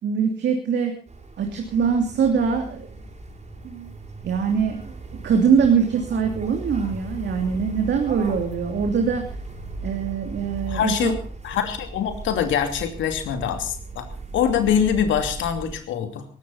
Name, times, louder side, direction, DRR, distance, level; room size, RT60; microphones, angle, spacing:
voice 1, 0.0-0.9 1.4-2.9 3.6-3.9 4.2-4.9 5.2-9.2 9.8-11.1, right 6 dB, 60° right, 3 dB, 3.1 m, -22 dB
sound 1, 1.1-15.7, right 2 dB, 35° right, 6.9 m, -37 dB
voice 2, 10.7-11.2 11.4-14.1 14.3-16.3, left 8 dB, 70° left, 8 dB, 2.8 m, -24 dB
19.0 x 16.0 x 4.2 m, 0.40 s
hypercardioid pair, 50°, 21 cm